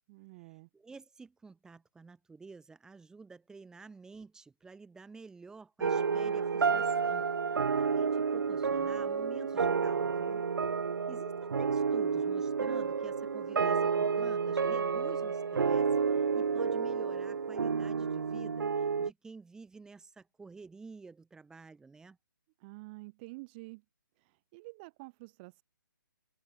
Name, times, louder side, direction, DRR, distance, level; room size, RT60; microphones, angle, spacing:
voice 1, 0.1-0.7 22.6-23.8 24.2-25.6, right 25 dB, 25° right, 2.8 m, -49 dB
voice 2, 0.7-7.3 7.8-10.5 11.1-15.9 16.1-22.2, right 4 dB, 5° right, 6.1 m, -51 dB
sound 1, 5.8-19.1, right 5 dB, 75° right, 1.2 m, -30 dB
hypercardioid pair, 150°, 11 cm